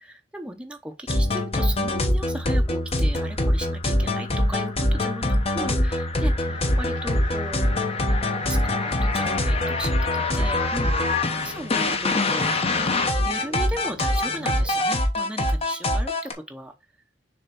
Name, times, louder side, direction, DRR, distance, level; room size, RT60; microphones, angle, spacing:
voice 1, 0.0-7.6 8.4-12.5 13.1-16.7, right 1 dB, 5° right, 0.7 m, -36 dB
sound 1, 1.1-16.3, left 1 dB, 35° left, 1.0 m, -23 dB
sound 2, 6.4-14.9, right 2 dB, 80° right, 1.3 m, -42 dB
6.6 x 3.6 x 4.3 m
head